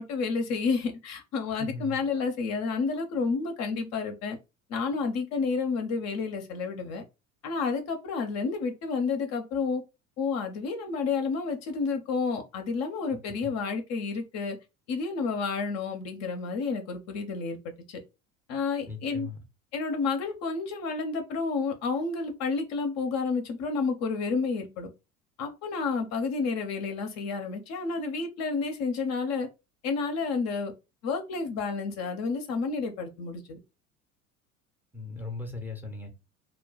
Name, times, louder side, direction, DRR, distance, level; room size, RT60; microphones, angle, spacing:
voice 1, 0.0-4.4 4.7-7.0 7.4-9.8 10.2-14.6 14.9-18.0 18.5-19.3 19.7-24.9 25.4-29.5 29.8-30.7 31.0-33.6, left 4 dB, 40° left, 0.6 m, -30 dB
voice 2, 1.6-2.0 13.2-13.5 18.9-19.4 34.9-36.3, left 3 dB, 5° right, 0.6 m, -38 dB
2.2 x 2.1 x 3.8 m
figure-of-eight pair, 65°, 42 cm